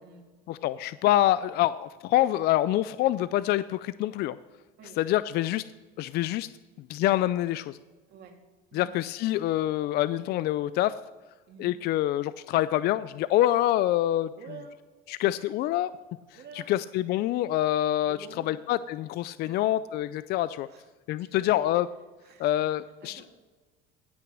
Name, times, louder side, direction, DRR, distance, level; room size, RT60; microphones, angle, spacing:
voice 1, 0.5-4.4 5.0-5.6 6.0-6.5 6.9-7.8 8.7-10.9 11.6-14.3 15.1-15.9 16.7-18.2 18.5-20.7 21.1-21.9 22.4-23.3, left 14 dB, 55° left, 15 dB, 0.4 m, -26 dB
voice 2, 14.4-14.8 16.3-16.8 18.0-18.6 19.4-19.6 20.7-20.9 21.2-21.7 22.2-22.5 23.0-23.3, right 5 dB, 55° right, 3 dB, 2.3 m, -48 dB
16.5 x 5.9 x 6.2 m, 1.3 s
supercardioid pair, 110°, 20 cm